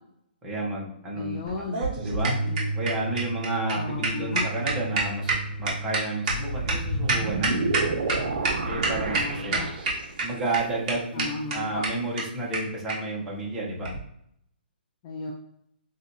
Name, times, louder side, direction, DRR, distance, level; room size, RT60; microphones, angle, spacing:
voice 1, 0.4-1.4 2.0-2.4 2.7-7.9 8.7-9.7 10.2-13.9, right 2 dB, 10° right, -4 dB, 0.9 m, -31 dB
voice 2, 1.2-1.8 2.5-2.7 3.8-4.5 9.1-9.7 11.1-11.8 15.0-15.3, left 3 dB, 20° left, -1 dB, 0.4 m, -34 dB
sound 1, 1.5-8.2 8.4-8.5 8.8-9.2 9.5-10.2 10.5-10.6 10.9-11.0 11.2-11.3 11.5-11.6 11.8-11.9 12.2-12.3 12.5-12.6 12.9-13.0 13.8-14.0, right 3 dB, 30° right, 1.4 m, -27 dB
sound 2, 2.0-7.9, right 2 dB, 60° left, 1.1 m, -33 dB
sound 3, 6.3-10.3, right 3 dB, 60° right, 0.7 m, -30 dB
6.0 x 2.5 x 2.7 m, 0.74 s
hypercardioid pair, 165°, 6 cm